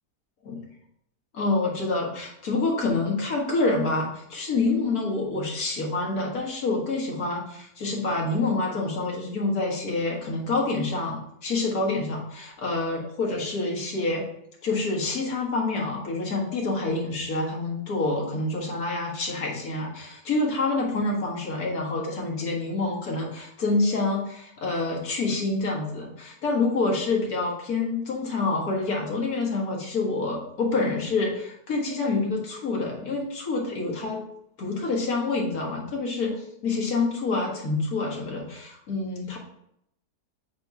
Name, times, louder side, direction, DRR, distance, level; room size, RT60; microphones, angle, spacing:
voice 1, 1.3-14.3 14.6-34.2 34.6-36.4 36.6-39.4, left 3 dB, 65° left, -2 dB, 1.9 m, -27 dB
7.6 x 2.7 x 4.7 m, 0.76 s
omnidirectional pair, 1.7 m